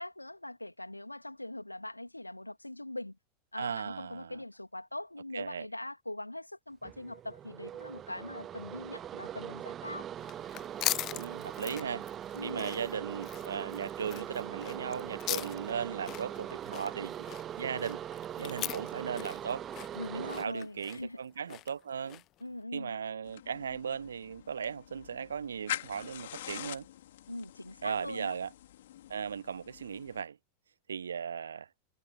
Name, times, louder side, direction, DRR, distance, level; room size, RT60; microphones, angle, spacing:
voice 1, 0.0-3.2 3.5-10.1 12.3-12.7 19.9-21.2 22.4-23.0 27.3-28.4, left 1 dB, 85° left, 2.9 m, -42 dB
voice 2, 3.6-4.4 5.3-5.7 11.1-12.1 12.4-17.1 17.6-18.0 18.4-19.6 20.1-22.2 22.7-26.9 27.8-28.5 29.1-30.4 30.9-31.7, right 7 dB, 70° right, 0.7 m, -37 dB
sound 1, 6.8-20.4, right 10 dB, 25° right, 1.0 m, -41 dB
sound 2, 10.2-22.4, left 15 dB, 35° left, 0.4 m, -40 dB
sound 3, 23.2-30.2, left 13 dB, 60° left, 3.5 m, -44 dB
figure-of-eight pair, 90°, 0 cm